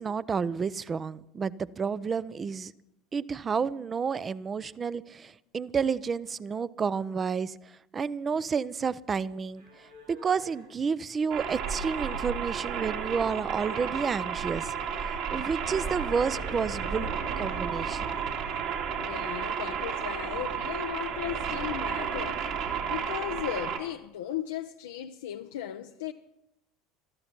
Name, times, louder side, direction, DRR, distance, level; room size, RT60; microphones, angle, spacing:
voice 1, 0.0-2.7 3.1-14.7 15.0-18.1, right 6 dB, 30° right, 0.6 m, -31 dB
sound 1, 9.5-21.5, right 2 dB, 90° right, 3.5 m, -53 dB
sound 2, 11.3-23.8, right 7 dB, 55° right, 2.7 m, -32 dB
voice 2, 19.0-26.1, left 11 dB, 70° left, 0.6 m, -36 dB
22.0 x 13.5 x 4.5 m
figure-of-eight pair, 70°, 0 cm